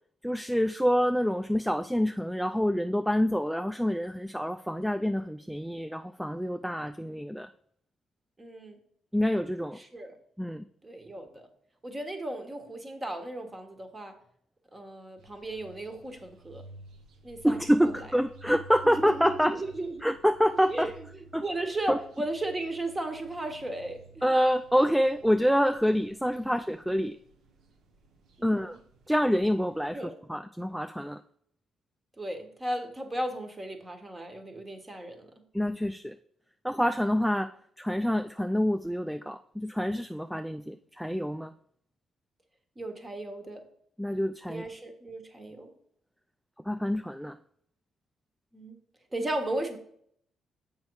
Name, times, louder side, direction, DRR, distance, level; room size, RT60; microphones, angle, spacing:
voice 1, 0.2-7.5 9.1-9.8 10.4-10.6 17.4-19.6 20.0-20.9 21.3-21.4 21.9-22.0 24.2-27.2 28.4-28.8 29.1-30.0 30.3-31.2 35.5-36.1 36.6-41.5 44.0-44.6 46.7-47.4, equal, ahead, 9 dB, 0.3 m, -27 dB
voice 2, 8.4-8.8 9.8-10.1 10.8-11.4 11.8-14.2 14.7-16.6 17.2-17.9 18.8-20.1 20.7-24.2 26.4-26.6 28.4-28.8 29.9-30.1 32.2-35.3 42.8-43.6 44.5-45.7 48.5-48.8 49.1-49.8, right 1 dB, 20° right, 6 dB, 1.3 m, -36 dB
sound 1, 15.2-30.0, right 3 dB, 75° right, 1.0 m, -53 dB
7.0 x 5.3 x 4.7 m, 0.66 s
cardioid pair, 90°, 0 cm